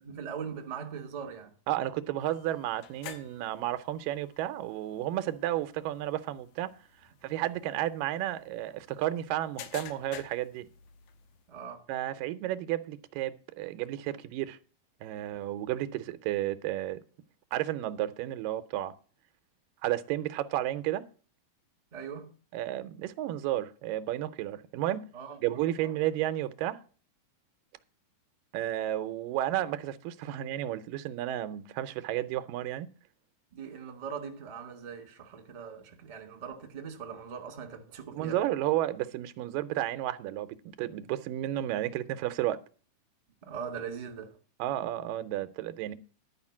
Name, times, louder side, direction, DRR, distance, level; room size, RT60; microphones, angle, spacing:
voice 1, 0.0-1.5 11.5-11.9 21.9-22.3 25.1-25.9 33.5-38.4 43.4-44.4, right 7 dB, 25° right, 1.0 m, -41 dB
voice 2, 1.7-6.7 7.2-10.7 11.9-14.6 15.0-17.0 17.5-18.9 19.8-21.0 22.5-25.1 25.4-26.8 28.5-32.9 38.1-42.6 44.6-46.0, right 13 dB, 90° right, 2.4 m, -32 dB
sound 1, 2.2-11.5, left 9 dB, 75° left, 2.4 m, -51 dB
11.5 x 5.0 x 7.1 m
omnidirectional pair, 3.8 m